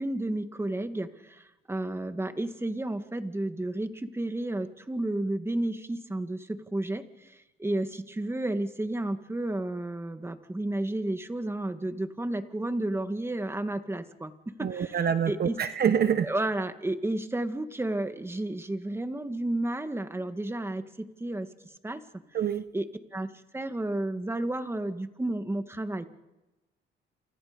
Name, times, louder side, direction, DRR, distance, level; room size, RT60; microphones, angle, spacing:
voice 1, 0.0-15.6 16.2-21.5 21.8-22.0 22.7-22.9 23.1-26.1, right 1 dB, 10° right, 8 dB, 2.0 m, -32 dB
voice 2, 14.6-16.3 22.3-22.6, right 8 dB, 55° right, 10 dB, 1.2 m, -26 dB
30.0 x 28.0 x 5.3 m, 1.0 s
cardioid pair, 90°, 20 cm